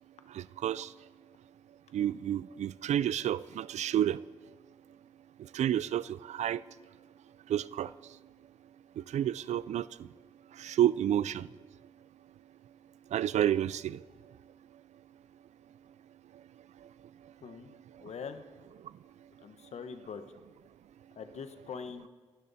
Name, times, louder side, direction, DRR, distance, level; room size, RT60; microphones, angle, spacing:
voice 1, 0.4-0.9 1.9-4.2 5.5-6.6 7.5-7.9 9.1-9.9 10.6-11.5 13.1-14.0, right 11 dB, 85° right, 19 dB, 0.4 m, -29 dB
voice 2, 17.4-17.7 18.0-18.4 19.4-20.2 21.2-22.1, left 6 dB, 75° left, 8 dB, 1.2 m, -42 dB
27.0 x 12.0 x 4.1 m, 1.5 s
cardioid pair, 80°, 11 cm